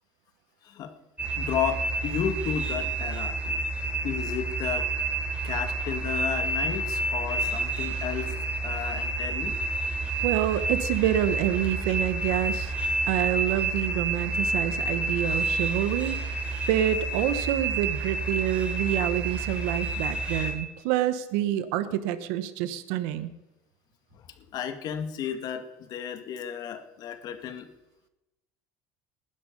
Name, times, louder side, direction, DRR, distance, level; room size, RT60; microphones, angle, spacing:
sound 1, 1.2-20.5, right 3 dB, 15° right, 7.9 m, -29 dB
voice 1, 1.4-3.6 4.0-4.9 5.4-8.3 8.6-9.6 24.1-24.2 24.5-27.7, left 8 dB, 55° left, 7 dB, 2.2 m, -33 dB
voice 2, 10.2-12.7 13.1-16.4 16.7-23.3, right 12 dB, 80° right, 12 dB, 1.2 m, -27 dB
20.0 x 12.5 x 5.4 m, 0.96 s
supercardioid pair, 90°, 8 cm